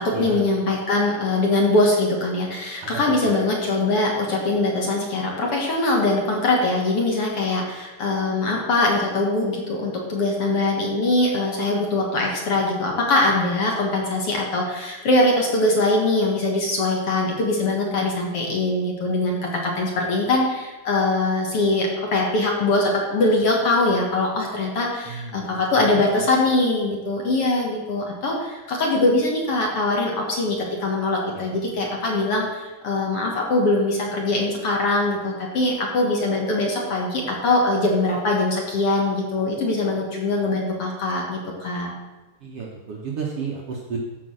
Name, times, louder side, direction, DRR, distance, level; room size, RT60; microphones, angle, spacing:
voice 1, 0.0-41.9, left 2 dB, 50° left, -1 dB, 2.3 m, -22 dB
voice 2, 25.1-25.6 25.9-26.3 31.3-31.5 42.4-44.0, right 5 dB, 60° right, -2 dB, 1.6 m, -33 dB
14.5 x 5.3 x 6.3 m, 1.2 s
omnidirectional pair, 3.8 m